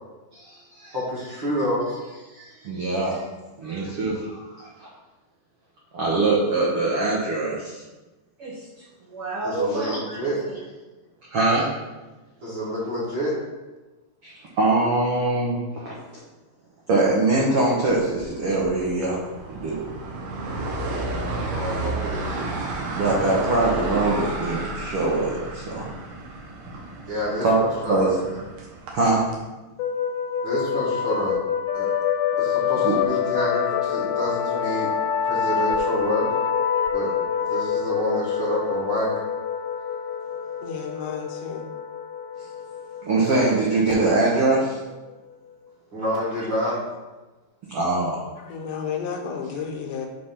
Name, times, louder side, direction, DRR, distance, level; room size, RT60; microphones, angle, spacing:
voice 1, 0.3-0.9 2.3-3.2 3.6-4.9 5.9-7.8 8.4-8.6 9.1-10.2 10.5-10.6 11.3-11.7 14.2-15.9 16.9-19.2 19.5-19.8 22.3-22.5 23.0-25.9 27.4-28.1 28.9-29.2 32.8-33.0 43.0-44.8 47.7-48.3, right 2 dB, 85° right, -4 dB, 1.2 m, -23 dB
voice 2, 0.9-2.0 9.4-10.4 12.4-13.3 21.3-22.4 27.1-28.1 30.4-31.4 31.7-31.9 32.4-34.9 35.2-36.3 36.9-37.1 37.4-39.2 45.9-46.8, equal, 40° right, -9 dB, 2.1 m, -28 dB
sound 1, 17.9-29.4, right 2 dB, 70° right, 2.5 m, -32 dB
sound 2, 29.8-45.1, left 8 dB, 90° left, 2.4 m, -26 dB
voice 3, 40.6-41.7 48.4-50.1, left 6 dB, 70° left, 2 dB, 2.2 m, -32 dB
7.7 x 3.4 x 5.6 m, 1.1 s
omnidirectional pair, 4.1 m